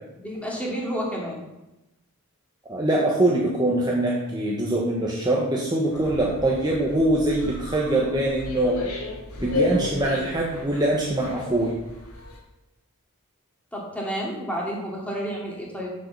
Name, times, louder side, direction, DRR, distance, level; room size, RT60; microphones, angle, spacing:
voice 1, 0.2-1.4 13.7-15.9, equal, 5° left, -3 dB, 2.4 m, -30 dB
voice 2, 2.6-8.8 9.4-11.8, right 1 dB, 20° right, -3 dB, 1.2 m, -23 dB
sound 1, 5.9-12.4, left 3 dB, 75° left, 2.7 m, -33 dB
7.7 x 7.1 x 6.8 m, 0.99 s
head